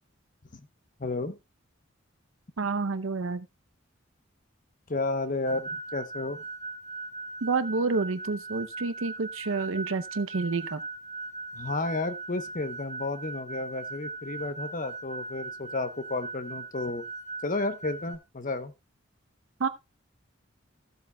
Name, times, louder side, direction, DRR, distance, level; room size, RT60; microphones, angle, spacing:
voice 1, 1.0-1.4 4.9-6.4 11.5-17.0 17.4-18.7, left 2 dB, 40° left, 0.9 m, -32 dB
voice 2, 2.6-3.5 7.4-10.8 19.6-19.7, right 4 dB, 75° right, 0.7 m, -29 dB
sound 1, 5.5-18.1, right 3 dB, 35° right, 1.8 m, -40 dB
15.5 x 7.8 x 2.3 m
head